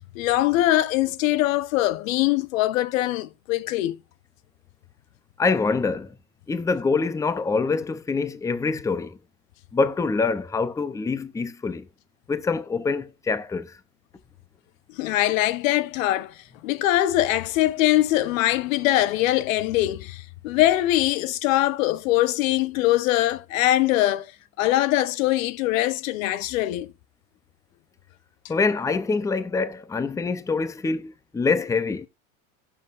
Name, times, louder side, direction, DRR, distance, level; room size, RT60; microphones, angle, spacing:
voice 1, 0.1-4.0 14.9-16.3 16.6-24.3 24.6-26.9, left 15 dB, 80° left, 0.9 m, -22 dB
voice 2, 5.4-6.1 6.5-9.2 9.7-11.9 12.3-13.8 28.5-32.1, left 4 dB, 10° left, 0.6 m, -25 dB
15.5 x 6.3 x 2.5 m
supercardioid pair, 135°, 39 cm